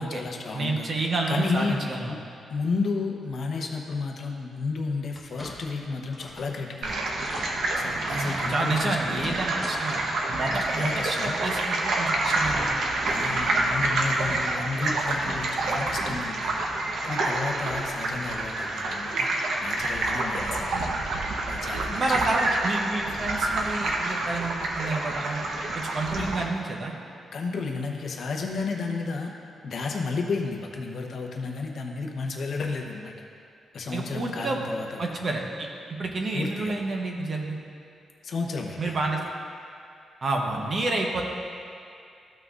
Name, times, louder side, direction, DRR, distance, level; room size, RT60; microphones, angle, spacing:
voice 1, 0.0-0.9 1.3-2.2 2.5-7.1 7.8-9.3 10.6-11.4 13.1-20.9 21.5-22.3 26.2-26.3 27.3-29.3 29.6-33.1 33.7-35.1 36.3-36.7 38.2-39.1, left 4 dB, 50° left, 1 dB, 0.8 m, -32 dB
voice 2, 0.5-2.1 8.1-10.0 10.3-12.7 14.3-14.4 21.9-25.4 25.7-26.9 33.9-34.6 35.0-35.7 36.0-37.6 38.8-39.2 40.2-41.2, right 2 dB, 35° right, 1 dB, 0.8 m, -29 dB
sound 1, 5.1-5.8 6.1-6.6 6.9-7.0 7.2-7.5 8.1-8.4 9.1-9.8 10.1-10.2 11.6-11.7 12.2-12.3, left 1 dB, ahead, 1.0 m, -41 dB
sound 2, 6.8-26.4, right 2 dB, 65° right, 0.8 m, -28 dB
14.0 x 5.8 x 2.5 m, 2.4 s
wide cardioid pair, 165°, 0 cm